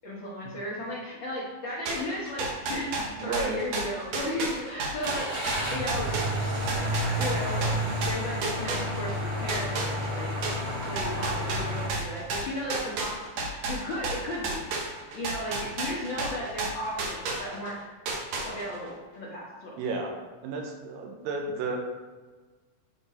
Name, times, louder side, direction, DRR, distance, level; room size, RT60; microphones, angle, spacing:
voice 1, 0.0-6.1 7.1-10.3 10.8-13.2 13.7-14.7 15.1-17.8 18.4-19.7, left 1 dB, 75° left, -6 dB, 1.0 m, -35 dB
sound 1, 1.9-9.2 9.5-17.7 18.1-18.9, right 3 dB, 65° right, 1.8 m, -32 dB
voice 2, 3.2-3.6 19.8-20.1 20.4-21.8, right 3 dB, 90° right, 1 dB, 2.6 m, -32 dB
Car / Engine starting, 5.0-11.9, equal, 50° right, 1.3 m, -31 dB
8.5 x 4.0 x 4.2 m, 1.3 s
omnidirectional pair, 3.9 m